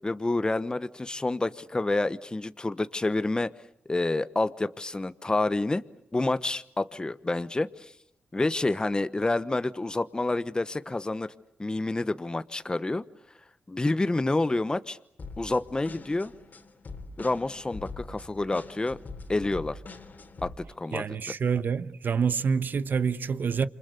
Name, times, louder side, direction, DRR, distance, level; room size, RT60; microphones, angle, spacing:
voice 1, 0.0-3.5 3.9-5.8 6.1-7.9 8.3-11.3 11.6-13.0 13.7-15.0 15.4-16.3 17.2-19.0 19.3-19.8 20.4-21.0, left 2 dB, 20° left, 1.0 m, -28 dB
sound 1, 15.2-20.5, left 3 dB, 50° left, 3.4 m, -43 dB
voice 2, 20.9-23.7, right 6 dB, 60° right, 1.1 m, -27 dB
28.0 x 25.5 x 8.1 m
cardioid pair, 65°, 4 cm